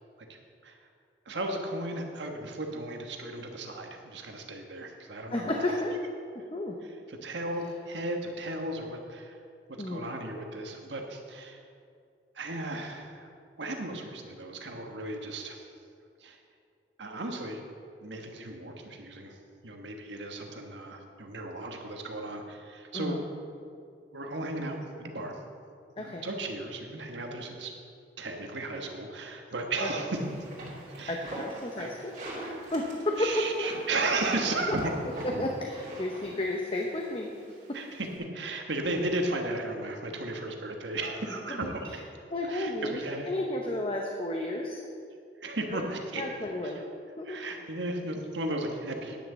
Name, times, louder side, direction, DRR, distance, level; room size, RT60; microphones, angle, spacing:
voice 1, 0.3-0.8 1.2-5.7 7.1-9.4 9.9-11.6 12.3-13.3 13.6-15.7 16.2-16.4 17.0-17.6 18.0-19.4 19.6-23.2 24.1-25.4 26.0-27.7 28.2-30.3 31.0-31.2 31.8-31.9 33.2-35.0 35.3-35.4 37.7-38.1 38.3-42.0 42.5-43.3 45.4-46.2 46.6-46.7 47.2-49.2, right 2 dB, 85° right, 3 dB, 1.4 m, -35 dB
voice 2, 5.3-6.0 6.5-6.7 9.8-10.1 22.9-23.2 26.0-26.3 29.8-29.9 31.1-32.1 32.7-33.3 35.2-37.3 41.6-41.7 42.3-44.8 45.7-45.9 46.2-46.8 47.2-47.4, left 1 dB, 30° left, 0 dB, 0.7 m, -32 dB
sound 1, 30.1-38.2, right 1 dB, 40° right, 2.7 m, -43 dB
10.0 x 6.6 x 7.2 m, 2.4 s
head